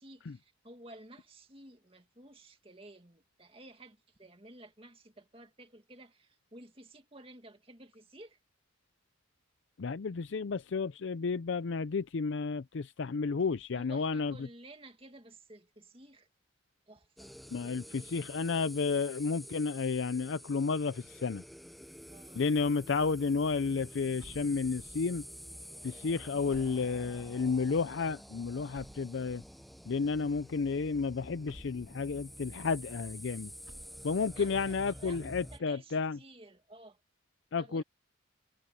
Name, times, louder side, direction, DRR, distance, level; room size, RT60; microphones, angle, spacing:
voice 1, 0.0-8.4 13.7-16.3 16.9-17.3 22.1-22.5 34.3-37.0 37.6-37.8, right 1 dB, 25° right, 2.2 m, -53 dB
voice 2, 9.8-14.3 17.5-21.4 22.4-25.2 25.8-29.4 29.9-33.5 34.0-36.2 37.5-37.8, left 4 dB, 65° left, 0.5 m, -32 dB
sound 1, 17.2-35.6, equal, ahead, 0.6 m, -49 dB
sound 2, 24.2-25.2 26.5-27.5 28.7-29.7 31.5-32.3 33.7-34.5, right 1 dB, 70° right, 1.9 m, -56 dB
head